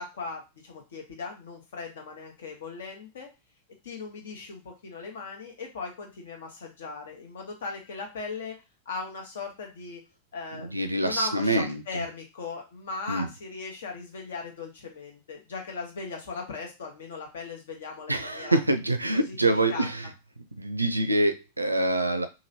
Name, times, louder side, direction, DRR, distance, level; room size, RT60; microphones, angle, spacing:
voice 1, 0.0-3.3 3.8-8.5 8.9-10.0 10.3-18.6 19.1-19.9, left 4 dB, 60° left, 2 dB, 0.9 m, -38 dB
voice 2, 10.5-11.8 13.1-13.3 18.1-20.1 20.6-22.3, right 1 dB, 85° right, 9 dB, 0.4 m, -25 dB
2.9 x 2.6 x 2.7 m, 0.26 s
figure-of-eight pair, 90°, 0 cm